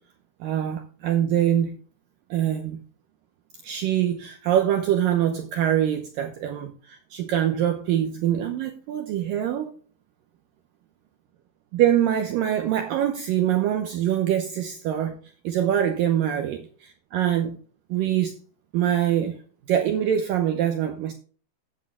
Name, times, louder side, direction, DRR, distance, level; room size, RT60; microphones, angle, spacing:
voice 1, 0.4-1.8 2.3-2.8 3.6-9.7 11.7-15.2 15.4-17.6 17.9-18.4 18.7-19.4 19.7-21.1, right 10 dB, 80° right, 2.0 m, -24 dB
15.0 x 8.6 x 2.3 m
omnidirectional pair, 5.0 m